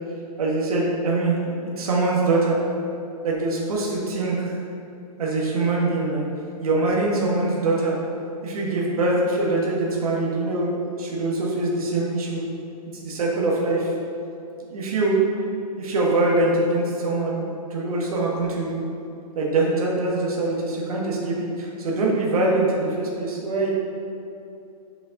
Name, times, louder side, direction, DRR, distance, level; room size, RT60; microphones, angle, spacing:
voice 1, 0.4-2.6 3.2-4.6 5.2-6.3 6.6-8.0 8.4-12.4 13.0-13.9 14.7-15.2 15.8-17.4 17.7-18.8 19.3-23.7, right 2 dB, 60° right, -4 dB, 1.6 m, -23 dB
6.6 x 5.5 x 3.8 m, 2.7 s
hypercardioid pair, 170°, 21 cm